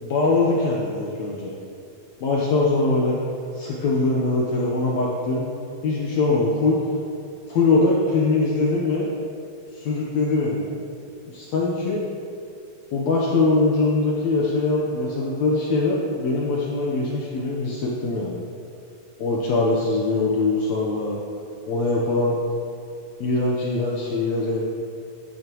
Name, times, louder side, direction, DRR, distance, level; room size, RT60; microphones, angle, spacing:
voice 1, 0.0-1.5 2.2-3.2 3.5-5.5 5.8-6.8 7.5-9.1 9.7-10.7 11.3-12.0 12.9-18.4 19.2-21.2 21.7-22.4 23.2-24.6, left 3 dB, 70° left, -4 dB, 1.8 m, -22 dB
10.5 x 9.7 x 3.0 m, 2.5 s
omnidirectional pair, 4.1 m